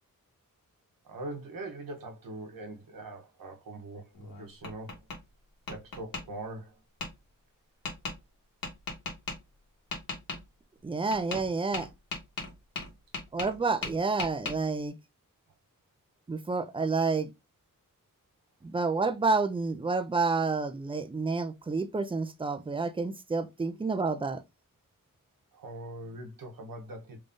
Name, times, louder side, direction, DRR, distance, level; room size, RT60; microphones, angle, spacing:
voice 1, 1.0-5.0 5.7-6.7 25.5-27.2, right 2 dB, 75° right, 1.0 m, -42 dB
Tap, 4.1-5.2 5.7-6.2 7.0-7.1 7.8-8.1 8.6-9.4 9.9-10.4 11.1-11.5 11.7-13.6 13.8-14.5, left 3 dB, 85° left, 1.4 m, -36 dB
voice 2, 10.8-11.9 13.3-14.9 16.3-17.3 18.6-24.4, right 4 dB, 15° right, 0.4 m, -29 dB
3.6 x 3.3 x 2.6 m
wide cardioid pair, 100°, 34 cm